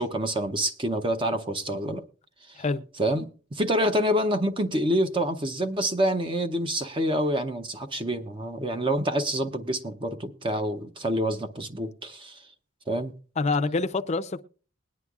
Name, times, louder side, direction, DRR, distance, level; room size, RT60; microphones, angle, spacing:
voice 1, 0.0-2.0 2.6-2.7 3.0-12.4 12.9-13.2, equal, 25° right, 0.7 m, -27 dB
voice 2, 13.4-14.4, left 3 dB, 35° left, 0.5 m, -26 dB
21.0 x 9.6 x 2.4 m
head